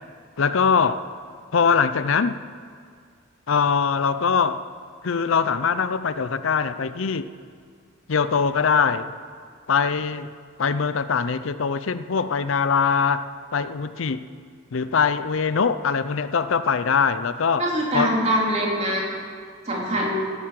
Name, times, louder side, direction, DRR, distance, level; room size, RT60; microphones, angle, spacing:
voice 1, 0.4-1.0 1.5-2.4 3.5-4.6 5.0-7.3 8.1-9.1 9.7-10.3 10.6-13.2 13.5-14.2 14.7-17.7 17.9-18.1, left 6 dB, 65° left, 13 dB, 0.5 m, -22 dB
voice 2, 17.6-19.1 19.6-20.2, equal, 30° right, -3 dB, 3.1 m, -23 dB
16.0 x 10.5 x 7.4 m, 2.1 s
head